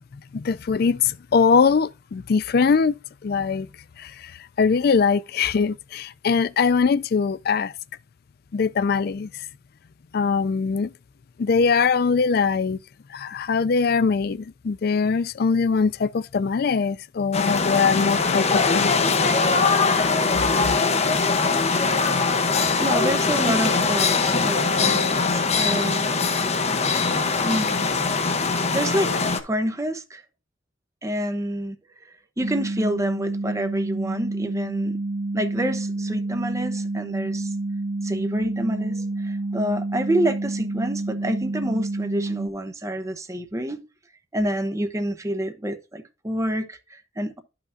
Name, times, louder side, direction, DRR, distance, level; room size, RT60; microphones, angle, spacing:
voice 1, 0.3-3.0 3.2-3.7 4.0-4.3 4.6-7.7 8.5-9.3 10.1-10.9 11.4-12.8 13.1-18.4 18.7-19.1, left 5 dB, 50° left, 0.4 m, -22 dB
sound 1, 17.3-29.4, left 4 dB, 35° left, 0.8 m, -21 dB
voice 2, 22.8-26.1 27.4-27.8 28.7-29.2 29.4-30.2 31.0-31.8 32.4-35.0 35.3-37.5 38.0-43.8 44.3-47.4, right 1 dB, 15° right, 0.8 m, -28 dB
sound 2, 32.4-42.5, right 2 dB, 80° right, 0.8 m, -28 dB
11.5 x 5.7 x 2.6 m
head